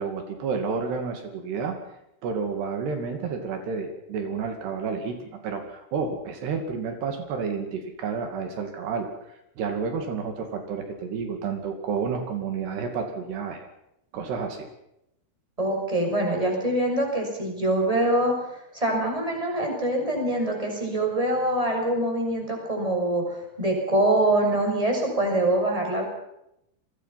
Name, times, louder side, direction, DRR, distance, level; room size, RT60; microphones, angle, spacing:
voice 1, 0.0-1.8 2.2-9.1 9.6-13.7 14.1-14.7, right 5 dB, 75° right, 5 dB, 4.4 m, -30 dB
voice 2, 15.6-18.3 18.7-26.0, right 1 dB, 10° right, 2 dB, 6.6 m, -24 dB
29.5 x 21.5 x 5.8 m, 0.82 s
omnidirectional pair, 4.8 m